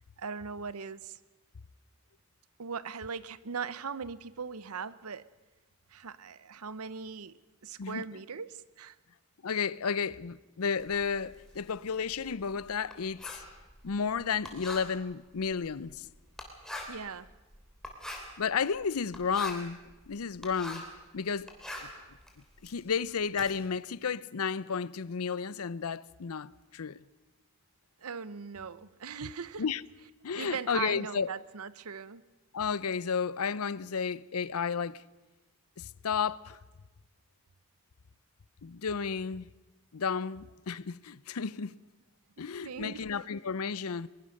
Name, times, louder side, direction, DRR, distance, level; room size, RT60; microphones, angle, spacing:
voice 1, 0.2-1.2 2.6-5.3 5.9-9.0 16.9-17.3 28.0-29.6 30.4-32.2 42.4-43.1, right 6 dB, 90° right, 0.8 m, -40 dB
voice 2, 9.4-13.4 13.8-16.1 18.4-19.8 20.1-20.8 21.1-21.5 21.8-21.9 22.6-27.0 29.6-29.8 30.2-31.3 32.5-35.0 35.8-36.6 38.6-39.5 39.9-41.8 42.4-44.1, left 6 dB, 85° left, 0.6 m, -32 dB
Writing, 10.8-21.0 21.3-23.5, left 1 dB, 5° left, 3.1 m, -45 dB
22.0 x 21.5 x 6.6 m
head